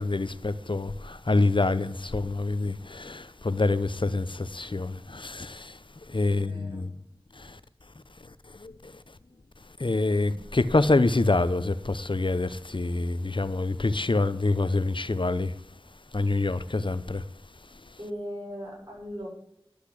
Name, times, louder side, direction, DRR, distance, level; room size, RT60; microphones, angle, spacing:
voice 1, 0.0-5.7 6.1-6.9 7.4-7.6 8.6-8.9 9.8-15.5 16.1-17.2, left 2 dB, 60° left, 0.8 m, -26 dB
voice 2, 6.3-6.8 18.0-19.3, equal, 50° right, 6.9 m, -38 dB
12.0 x 8.3 x 8.2 m
wide cardioid pair, 40°, 10 cm